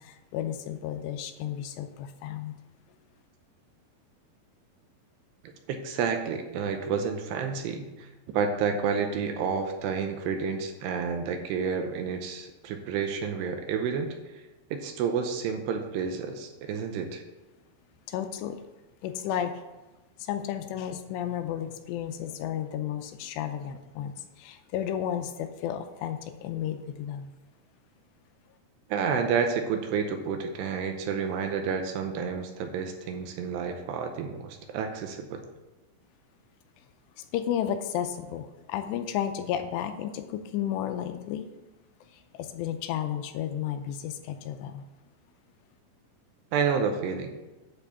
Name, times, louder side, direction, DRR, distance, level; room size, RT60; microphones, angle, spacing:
voice 1, 0.0-2.6 18.1-18.6 19.0-19.6 20.2-27.3 37.3-41.5 42.3-44.8, left 10 dB, 85° left, 8 dB, 2.7 m, -33 dB
voice 2, 5.7-14.1 14.7-17.2 28.9-35.4 46.5-47.3, right 6 dB, 80° right, 5 dB, 2.7 m, -30 dB
9.9 x 4.4 x 6.9 m, 1.1 s
omnidirectional pair, 5.1 m